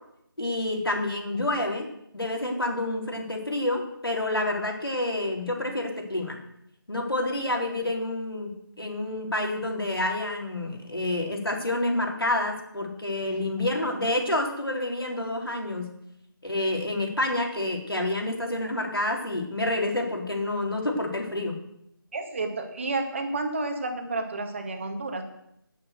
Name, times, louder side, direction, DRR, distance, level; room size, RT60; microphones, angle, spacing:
voice 1, 0.4-1.9 2.1-6.4 6.9-15.9 16.4-21.6, left 1 dB, 85° left, 1 dB, 3.8 m, -28 dB
voice 2, 22.1-25.2, right 3 dB, 35° right, 5 dB, 1.9 m, -30 dB
10.0 x 9.1 x 8.0 m, 0.77 s
figure-of-eight pair, 160°, 12 cm